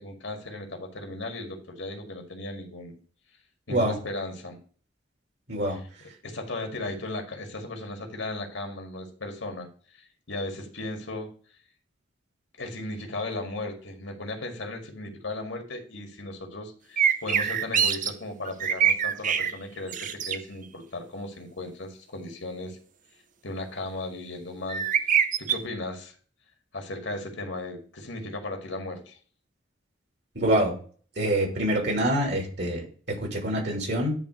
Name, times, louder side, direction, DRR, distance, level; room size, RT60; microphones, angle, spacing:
voice 1, 0.0-2.9 3.7-4.6 5.7-5.8 6.2-11.3 12.6-22.8 23.4-24.9 25.4-26.1 26.7-29.2, left 2 dB, 75° left, 3 dB, 2.0 m, -36 dB
sound 1, 17.0-18.1 18.4-19.5 19.9-20.4 24.7-25.5, right 8 dB, 40° right, 0.6 m, -24 dB
voice 2, 30.3-30.7 31.2-34.2, right 1 dB, 60° right, 0 dB, 2.9 m, -26 dB
10.0 x 3.6 x 5.2 m, 0.43 s
head